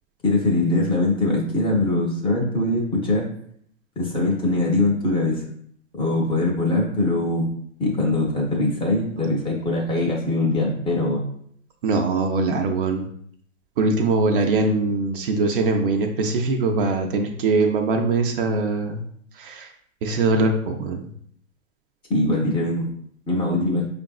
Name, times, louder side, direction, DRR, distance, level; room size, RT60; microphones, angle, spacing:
voice 1, 0.2-3.3 4.0-5.4 6.0-7.5 7.8-11.2 22.1-22.9 23.3-23.9, left 2 dB, 15° left, -2 dB, 0.6 m, -22 dB
voice 2, 11.8-13.1 13.8-19.0 19.4-19.7 20.0-21.1, right 3 dB, 45° right, 3 dB, 0.5 m, -22 dB
5.1 x 2.5 x 2.3 m, 0.65 s
hypercardioid pair, 115°, 40 cm